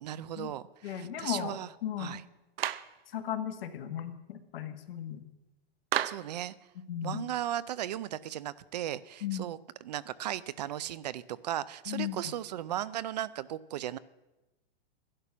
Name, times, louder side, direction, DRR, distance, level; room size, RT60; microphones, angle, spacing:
voice 1, 0.0-1.7 2.0-2.2 6.0-6.5 7.0-14.0, right 12 dB, 45° right, 18 dB, 0.4 m, -36 dB
voice 2, 0.8-1.6 1.8-2.2 3.1-5.2 6.9-7.2 9.2-9.4 11.9-12.2, left 10 dB, 70° left, 8 dB, 1.5 m, -36 dB
Clapping, 2.6-2.9 5.9-6.3, right 12 dB, 75° right, 0.7 m, -31 dB
12.5 x 11.0 x 6.0 m, 1.0 s
supercardioid pair, 170°, 30 cm